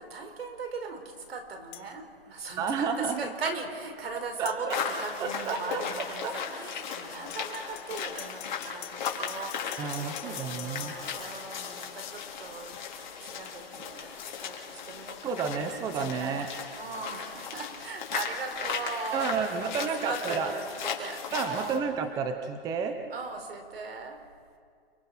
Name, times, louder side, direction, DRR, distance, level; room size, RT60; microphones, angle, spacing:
voice 1, 0.0-14.1 14.4-15.5 15.7-21.9 23.1-24.2, right 4 dB, 75° right, 6 dB, 4.5 m, -39 dB
sound 1, 1.7-1.9 4.5-4.6 7.3-10.9, left 15 dB, 25° left, 1.1 m, -44 dB
voice 2, 2.6-3.2 4.4-4.8 5.2-5.8 6.2-6.3 9.8-10.9 15.2-16.5 19.1-20.5 21.3-23.0, right 5 dB, 10° right, 7 dB, 0.9 m, -31 dB
sound 2, 4.7-21.8, left 7 dB, 50° left, 3.6 m, -37 dB
29.0 x 22.5 x 5.8 m, 2.1 s
hypercardioid pair, 155°, 30 cm